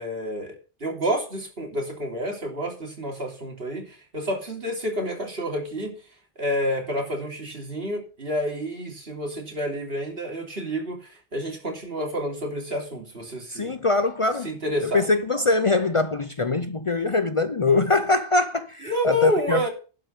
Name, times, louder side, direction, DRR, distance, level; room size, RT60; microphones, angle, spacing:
voice 1, 0.0-5.9 6.4-13.7 14.4-15.0 18.8-19.7, equal, 70° right, 3.3 m, -29 dB
voice 2, 13.5-14.5 14.9-19.7, left 3 dB, 35° left, 0.6 m, -23 dB
11.5 x 5.7 x 6.6 m
omnidirectional pair, 1.1 m